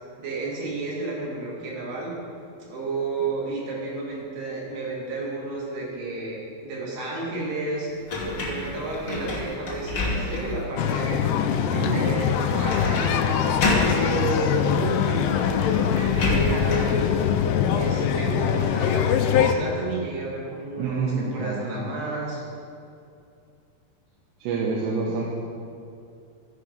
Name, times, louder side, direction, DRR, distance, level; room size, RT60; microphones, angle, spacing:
voice 1, 0.2-2.1 2.7-7.9 8.3-11.2 11.7-13.4 13.7-17.0 17.8-22.4, right 2 dB, 70° right, -4 dB, 4.0 m, -31 dB
sound 1, 8.1-10.7 11.2-11.3 12.7-13.2 13.4-14.1 15.1-15.2 15.5-17.0, left 2 dB, 60° left, 1.4 m, -28 dB
sound 2, 10.8-19.5, left 8 dB, 80° left, 2.6 m, -23 dB
voice 2, 20.8-21.7 24.4-25.4, right 4 dB, 85° right, -3 dB, 3.0 m, -27 dB
14.5 x 5.0 x 5.2 m, 2.5 s
omnidirectional pair, 4.8 m